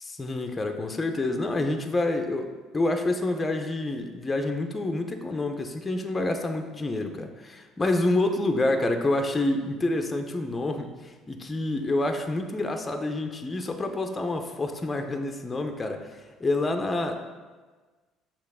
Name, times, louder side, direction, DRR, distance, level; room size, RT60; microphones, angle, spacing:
voice 1, 0.2-17.2, left 2 dB, 20° left, 5 dB, 0.6 m, -28 dB
6.7 x 3.0 x 4.8 m, 1.3 s
supercardioid pair, 85°, 0 cm